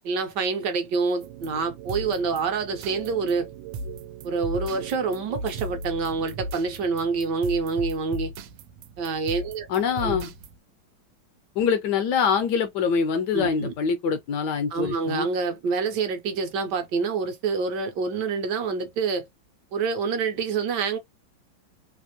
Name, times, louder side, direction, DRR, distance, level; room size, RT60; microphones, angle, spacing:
voice 1, 0.0-3.5 4.2-8.3 9.0-10.2 13.3-13.7 14.7-19.3 19.7-21.0, right 4 dB, 70° right, 1.2 m, -27 dB
sound 1, 1.2-10.6, right 3 dB, 90° right, 1.4 m, -37 dB
voice 2, 9.7-10.3 11.6-15.3, left 6 dB, 75° left, 1.0 m, -24 dB
3.3 x 2.4 x 2.7 m
omnidirectional pair, 2.1 m